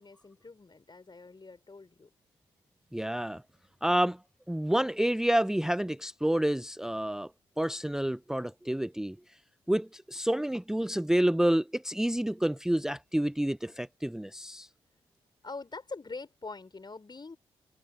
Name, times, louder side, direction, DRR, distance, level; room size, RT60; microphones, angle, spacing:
voice 1, 0.0-2.1 15.4-17.4, left 3 dB, 35° left, 5.5 m, -44 dB
voice 2, 2.9-3.4 3.8-4.2 4.5-7.3 7.6-9.2 9.7-14.7, right 1 dB, 5° right, 0.6 m, -29 dB
hypercardioid pair, 40°, 13 cm